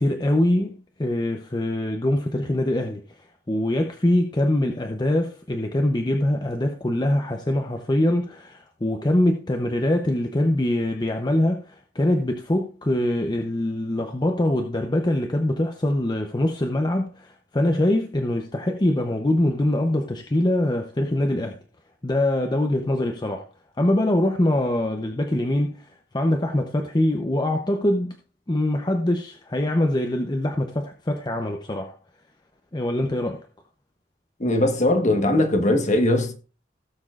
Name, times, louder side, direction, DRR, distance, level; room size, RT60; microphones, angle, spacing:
voice 1, 0.0-21.6 22.0-23.5 23.8-28.2 28.5-32.0 32.7-33.5, left 1 dB, 25° left, 0.7 m, -23 dB
voice 2, 34.4-36.3, left 1 dB, 40° left, 1.3 m, -20 dB
17.0 x 7.1 x 2.4 m
head